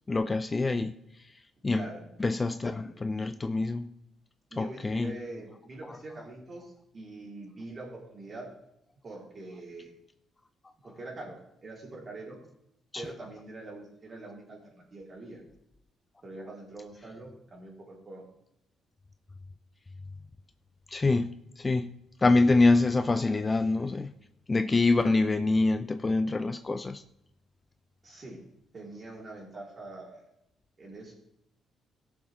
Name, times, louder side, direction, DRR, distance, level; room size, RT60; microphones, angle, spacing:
voice 1, 0.1-0.9 1.6-1.9 2.2-3.9 4.6-5.1 12.9-13.0 20.9-21.9 22.2-24.1 24.5-27.0, left 3 dB, 25° left, 10 dB, 0.5 m, -25 dB
voice 2, 1.7-2.0 4.5-8.5 9.0-9.9 10.8-12.4 12.9-15.4 16.2-18.3 28.0-28.4 28.7-30.2 30.8-31.1, right 2 dB, 40° right, -2 dB, 4.2 m, -44 dB
16.5 x 7.2 x 3.7 m, 0.79 s
cardioid pair, 90°, 0 cm